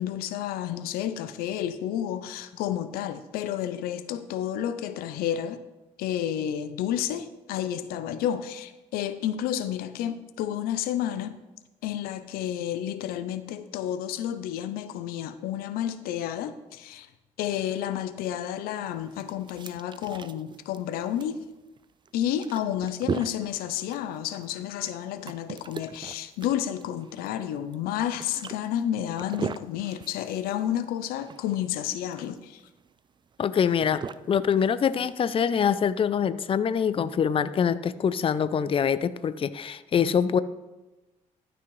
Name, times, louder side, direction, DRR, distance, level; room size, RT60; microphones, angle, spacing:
voice 1, 0.0-5.6 6.0-11.3 11.8-17.1 17.4-21.4 22.1-32.6, left 10 dB, 90° left, 12 dB, 0.5 m, -31 dB
sound 1, 18.9-35.4, right 6 dB, 30° right, 0.4 m, -40 dB
voice 2, 33.4-40.4, left 7 dB, 35° left, 15 dB, 0.4 m, -24 dB
13.0 x 6.1 x 3.1 m, 1.1 s
cardioid pair, 75°, 15 cm